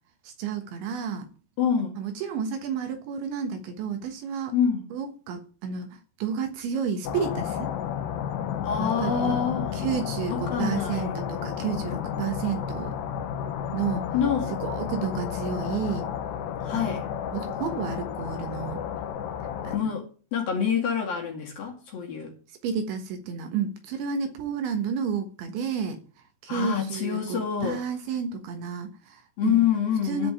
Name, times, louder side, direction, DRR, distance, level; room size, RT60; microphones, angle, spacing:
voice 1, 0.2-1.3 2.0-4.6 4.9-7.7 8.8-9.4 9.7-12.9 13.7-14.1 14.6-16.1 16.7-16.9 17.3-18.8 19.6-19.9 22.6-26.0 26.4-29.6 30.0-30.3, right 6 dB, 70° right, 3.4 m, -31 dB
voice 2, 1.6-2.0 4.5-4.9 8.6-9.7 10.3-11.1 14.1-14.6 16.6-17.1 19.7-22.3 26.5-27.8 29.4-30.3, left 8 dB, 50° left, 3.5 m, -26 dB
sound 1, 7.0-19.8, left 9 dB, 70° left, 2.8 m, -32 dB
13.0 x 5.2 x 9.0 m
omnidirectional pair, 5.9 m